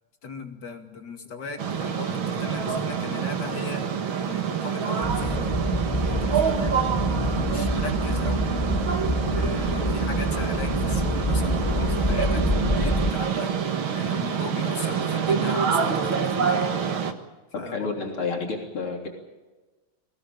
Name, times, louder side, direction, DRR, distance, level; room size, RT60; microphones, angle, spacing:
voice 1, 0.2-3.9 4.2-5.6 5.9-6.9 7.2-8.8 9.3-13.6 13.9-16.8 17.6-17.9, left 4 dB, 55° left, 5 dB, 2.9 m, -37 dB
sound 1, 1.6-17.1, right 7 dB, 75° right, 2.5 m, -26 dB
sound 2, 5.0-13.1, left 1 dB, 15° left, 1.4 m, -27 dB
voice 2, 17.5-19.1, left 4 dB, 85° left, 2 dB, 4.3 m, -30 dB
23.0 x 17.5 x 8.9 m, 1.2 s
omnidirectional pair, 2.3 m